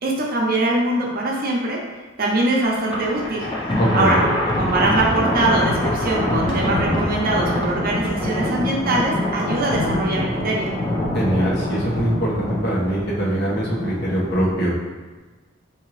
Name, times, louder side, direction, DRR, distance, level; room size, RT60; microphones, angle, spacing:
voice 1, 0.0-1.8 2.2-3.5 3.9-4.2 4.5-10.7, right 2 dB, 50° right, -2 dB, 0.7 m, -22 dB
Thunder, 2.7-14.5, left 1 dB, 25° left, 0.7 m, -24 dB
voice 2, 3.8-4.3 11.1-14.7, right 1 dB, 60° left, -6 dB, 1.1 m, -22 dB
3.8 x 2.8 x 3.0 m, 1.3 s
head